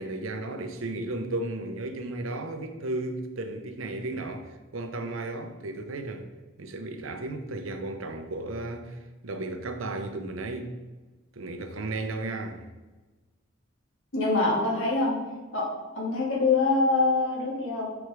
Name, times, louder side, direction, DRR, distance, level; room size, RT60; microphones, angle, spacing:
voice 1, 0.0-6.3 6.6-10.7 11.3-12.7, right 2 dB, 85° right, 0.8 m, -34 dB
voice 2, 14.1-15.2 15.5-15.7 15.9-17.9, left 3 dB, 80° left, 2.0 m, -24 dB
6.2 x 4.9 x 4.8 m
head